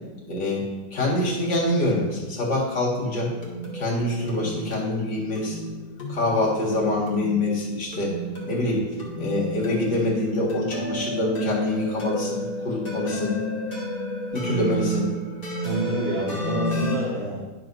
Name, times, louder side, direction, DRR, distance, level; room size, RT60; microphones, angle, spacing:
voice 1, 0.3-3.3 3.7-5.7 6.1-8.2 8.4-8.9 9.2-13.4 14.3-15.1, left 1 dB, 65° left, -4 dB, 2.5 m, -25 dB
sound 1, 2.9-17.0, equal, 30° left, 1.9 m, -32 dB
voice 2, 15.6-17.5, right 1 dB, 90° right, -6 dB, 2.1 m, -28 dB
11.5 x 5.9 x 2.6 m, 1.2 s
omnidirectional pair, 2.1 m